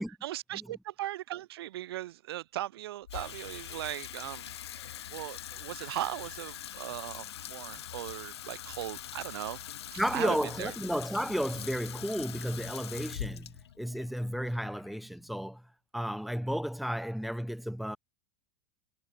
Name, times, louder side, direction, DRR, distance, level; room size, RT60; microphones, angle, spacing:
voice 1, 0.0-4.5 4.8-4.9 5.1-9.6 9.9-10.7, right 14 dB, 60° right, 2.3 m, -38 dB
Water tap faucet / Sink (filling or washing), 3.0-15.4, left 11 dB, 65° left, 2.8 m, -43 dB
voice 2, 10.0-15.6 15.9-18.0, equal, ahead, 4.2 m, -33 dB
figure-of-eight pair, 85°, 14 cm